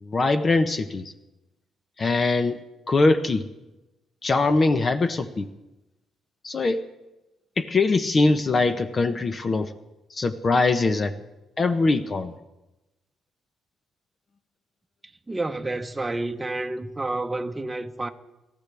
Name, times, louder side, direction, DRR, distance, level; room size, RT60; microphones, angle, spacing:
voice 1, 0.0-1.1 2.0-2.6 2.9-3.5 4.2-5.5 6.4-6.8 7.6-9.7 10.1-11.1 11.6-12.3, left 3 dB, 40° left, 0.9 m, -22 dB
voice 2, 15.3-18.1, right 2 dB, 20° right, 0.9 m, -29 dB
27.0 x 14.0 x 3.5 m
cardioid pair, 90°, 0 cm